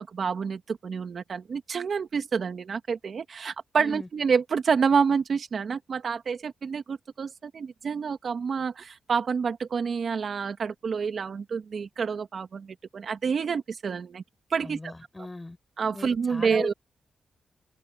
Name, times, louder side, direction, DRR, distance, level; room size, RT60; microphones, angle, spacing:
voice 1, 0.0-14.2 14.5-14.9 15.8-16.7, right 6 dB, 65° right, 2.3 m, -28 dB
voice 2, 3.8-4.1 14.6-15.6 15.9-16.7, left 2 dB, 20° left, 6.6 m, -38 dB
open air
cardioid pair, 65°, 0 cm